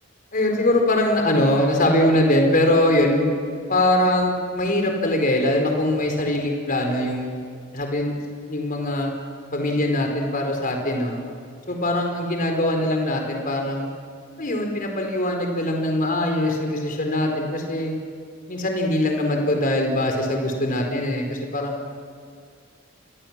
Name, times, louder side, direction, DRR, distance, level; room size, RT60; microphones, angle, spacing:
voice 1, 0.3-3.3 3.7-7.3 7.7-8.2 8.5-9.1 9.5-11.2 11.7-13.9 14.4-17.9 18.5-21.8, left 1 dB, 45° left, 2 dB, 4.6 m, -22 dB
29.0 x 23.5 x 7.6 m, 2.1 s
head